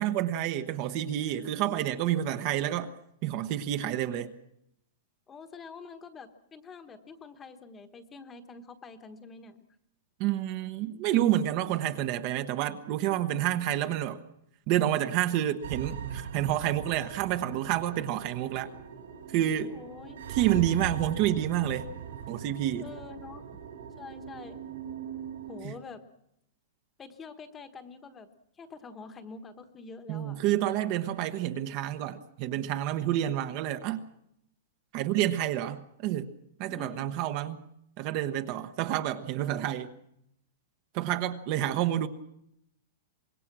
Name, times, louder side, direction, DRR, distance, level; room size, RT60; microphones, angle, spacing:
voice 1, 0.0-2.9 3.2-4.3 10.2-14.2 14.7-18.7 19.3-19.7 20.3-21.9 22.3-22.9 25.6-25.8 30.1-34.1 34.9-36.3 36.6-37.6 38.0-39.9 40.9-42.1, right 12 dB, 35° right, 9 dB, 1.0 m, -29 dB
voice 2, 5.3-9.6 19.7-20.2 22.8-23.4 24.0-24.6 25.5-26.0 27.0-28.3 28.6-30.4 36.7-37.1, left 4 dB, 15° left, 8 dB, 1.3 m, -46 dB
sound 1, 15.6-25.7, right 8 dB, 85° right, 5.1 m, -40 dB
25.0 x 21.5 x 6.1 m, 0.79 s
supercardioid pair, 175°, 0 cm